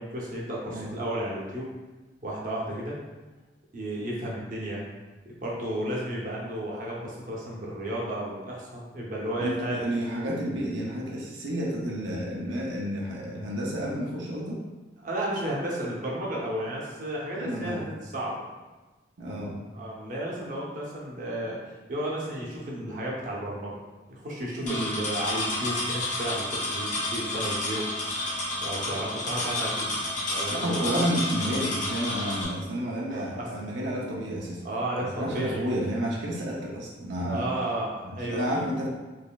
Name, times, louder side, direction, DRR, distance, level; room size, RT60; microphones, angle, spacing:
voice 1, 0.0-1.7 2.2-3.0 3.7-4.8 5.3-9.8 10.2-10.3 15.0-18.5 19.7-21.6 21.9-23.8 24.1-27.8 28.6-29.9 30.3-30.8 33.1-33.5 34.6-35.7 37.2-38.9, right 1 dB, 45° right, -4 dB, 0.7 m, -33 dB
voice 2, 9.4-14.6 17.3-17.8 19.2-19.6 24.6-24.9 30.5-34.6 35.0-37.5 38.0-38.9, equal, 80° right, -4 dB, 0.6 m, -31 dB
sound 1, 24.7-32.4, left 1 dB, 40° left, 0.9 m, -30 dB
4.1 x 3.1 x 2.3 m, 1.2 s
head